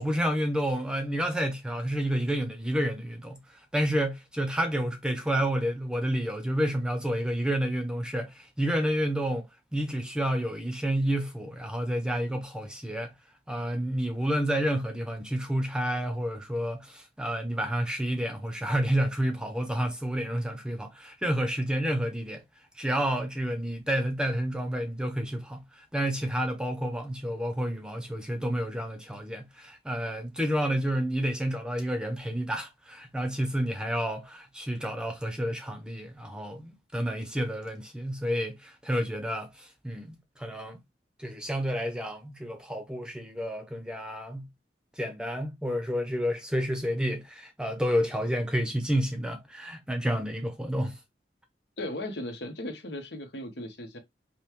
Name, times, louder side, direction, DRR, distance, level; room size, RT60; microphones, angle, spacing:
voice 1, 0.0-3.4 3.7-9.5 9.7-13.1 13.5-22.4 22.8-40.8 41.2-44.5 45.0-51.0, equal, 5° right, 0.7 m, -30 dB
voice 2, 51.8-54.0, left 1 dB, 80° left, 1.0 m, -37 dB
5.3 x 2.2 x 3.0 m
head